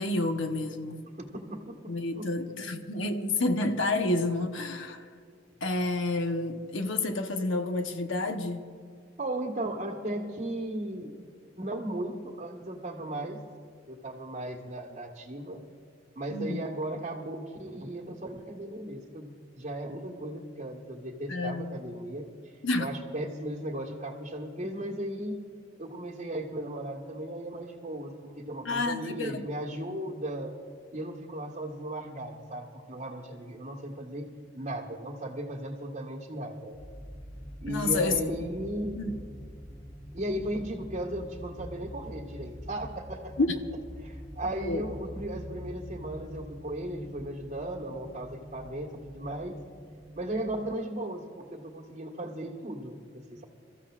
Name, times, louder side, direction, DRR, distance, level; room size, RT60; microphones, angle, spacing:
voice 1, 0.0-1.0 1.9-5.0 5.6-8.7 16.3-16.6 21.3-21.8 22.6-22.9 28.6-29.5 37.7-38.3 39.0-39.1 43.4-43.5 44.6-44.8, left 2 dB, 75° left, 1.0 m, -29 dB
voice 2, 1.2-2.3 9.2-11.1 11.6-13.4 13.9-15.6 16.1-22.5 22.8-25.4 25.8-30.6 30.9-34.3 34.5-36.8 37.6-39.0 40.1-43.3 44.0-49.6 50.1-53.4, right 1 dB, 40° right, 1.5 m, -36 dB
sound 1, 36.7-50.7, equal, 15° left, 3.2 m, -45 dB
28.5 x 14.5 x 2.5 m
head